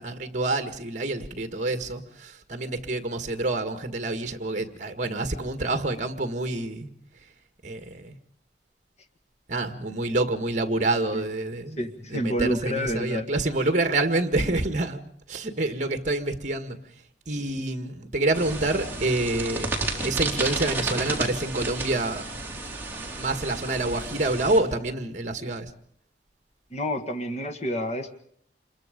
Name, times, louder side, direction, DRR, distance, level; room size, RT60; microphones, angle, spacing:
voice 1, 0.0-6.9 7.6-8.2 9.5-11.8 12.1-15.0 15.3-16.8 17.3-19.7 20.0-22.3 23.2-25.7, right 2 dB, 45° right, 9 dB, 1.8 m, -27 dB
voice 2, 11.8-13.3 26.7-28.1, equal, 40° left, 7 dB, 1.8 m, -29 dB
sound 1, 18.3-24.6, right 3 dB, 10° right, 3.5 m, -32 dB
27.0 x 22.0 x 5.2 m, 0.63 s
head